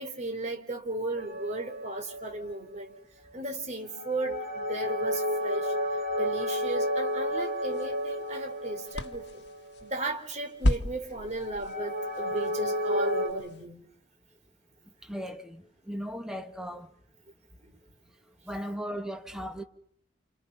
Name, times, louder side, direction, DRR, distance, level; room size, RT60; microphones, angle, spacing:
voice 1, 0.0-2.9 3.3-5.7 6.2-9.4 9.8-13.8 17.6-17.7, right 2 dB, 40° right, 3.6 m, -35 dB
sound 1, 1.2-2.9 3.8-9.9 11.4-13.3, equal, 55° right, 6.0 m, -32 dB
sound 2, 7.1-13.7, left 1 dB, 60° left, 1.4 m, -35 dB
voice 2, 15.0-16.9 18.4-19.6, equal, 5° right, 1.5 m, -37 dB
29.5 x 28.0 x 5.6 m
head